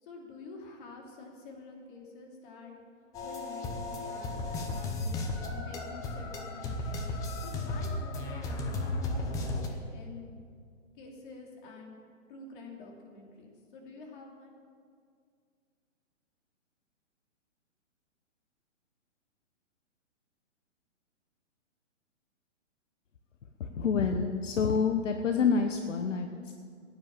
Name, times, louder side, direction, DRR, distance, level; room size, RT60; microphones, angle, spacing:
voice 1, 0.0-2.7 3.2-7.2 7.4-8.8 9.2-10.3 10.9-12.0 12.3-14.6, left 3 dB, 40° left, 0 dB, 2.9 m, -48 dB
sound 1, 3.1-9.7, left 2 dB, 10° left, 0.6 m, -34 dB
voice 2, 23.6-26.5, left 5 dB, 75° left, 6 dB, 1.1 m, -28 dB
14.5 x 9.5 x 7.2 m, 2.2 s
hypercardioid pair, 145°, 38 cm